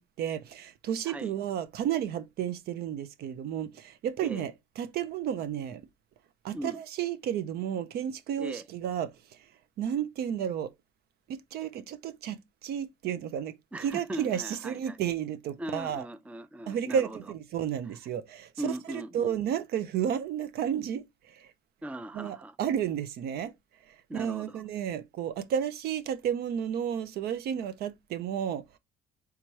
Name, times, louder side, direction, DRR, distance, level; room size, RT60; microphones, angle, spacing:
voice 1, 0.0-5.8 6.4-9.5 9.8-10.7 11.3-16.1 16.7-21.5 22.1-23.5 23.8-28.8, right 9 dB, 70° right, 0.6 m, -32 dB
voice 2, 13.7-15.0 15.6-17.2 18.6-19.4 21.8-22.6 24.1-24.6, right 1 dB, 10° right, 0.5 m, -39 dB
3.5 x 2.9 x 4.5 m
cardioid pair, 110°, 17 cm